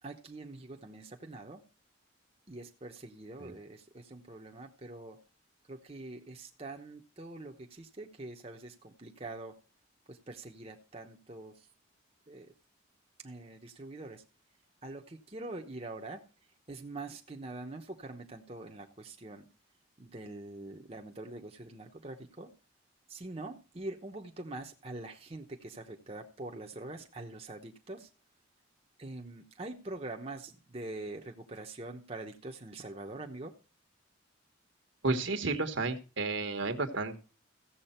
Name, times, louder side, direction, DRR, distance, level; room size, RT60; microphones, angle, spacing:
voice 1, 0.0-1.6 2.5-5.2 5.7-9.6 10.1-11.7 12.3-12.5 13.2-14.2 14.8-16.2 16.7-19.5 20.0-22.5 23.1-28.1 29.0-33.5, right 2 dB, 30° right, 1.0 m, -44 dB
voice 2, 35.0-37.2, right 3 dB, 65° right, 1.4 m, -32 dB
15.5 x 7.6 x 4.3 m
head